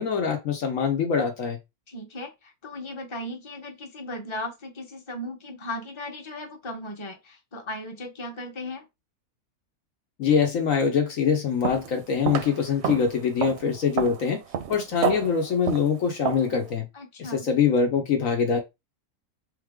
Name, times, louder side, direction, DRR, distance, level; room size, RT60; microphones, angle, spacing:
voice 1, 0.0-1.6 10.2-14.4 14.7-16.9 17.3-18.6, left 6 dB, 65° left, 1.2 m, -24 dB
voice 2, 1.9-8.9 16.9-17.5, left 1 dB, 20° left, 1.0 m, -37 dB
sound 1, 11.6-11.9 12.3-16.6, right 7 dB, 60° right, 0.8 m, -30 dB
4.0 x 3.3 x 3.6 m
omnidirectional pair, 1.6 m